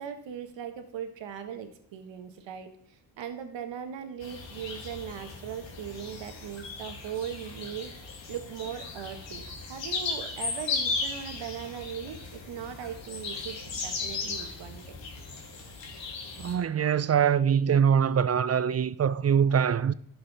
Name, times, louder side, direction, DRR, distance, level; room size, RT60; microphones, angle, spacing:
voice 1, 0.0-7.9 8.3-14.8, right 8 dB, 80° right, 1.4 m, -39 dB
sound 1, 4.2-16.5, left 4 dB, 75° left, 2.3 m, -36 dB
voice 2, 16.4-19.9, right 8 dB, 35° right, 0.5 m, -23 dB
11.0 x 6.8 x 4.1 m
supercardioid pair, 60°, 44 cm